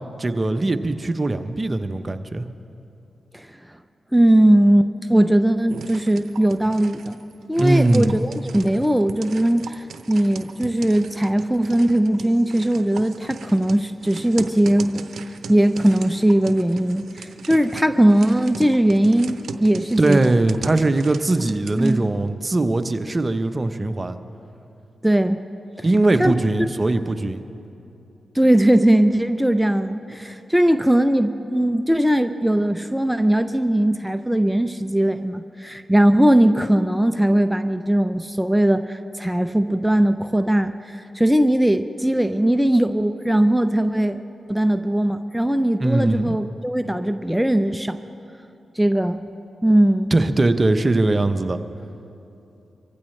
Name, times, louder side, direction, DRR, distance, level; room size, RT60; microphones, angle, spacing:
voice 1, 0.2-2.5 7.6-8.2 20.0-24.2 25.8-27.4 45.8-46.4 50.1-51.6, right 2 dB, 35° right, 9 dB, 0.8 m, -20 dB
voice 2, 4.1-7.2 7.5-15.0 15.5-20.3 21.8-22.1 25.0-25.4 25.8-25.9 26.2-26.4 28.3-44.2 44.5-48.0 48.8-49.2 49.6-50.2, right 1 dB, 5° right, 8 dB, 0.6 m, -19 dB
sound 1, 5.7-21.9, right 5 dB, 75° right, 0.7 m, -39 dB
25.0 x 15.0 x 3.3 m, 2.8 s
supercardioid pair, 45°, 0 cm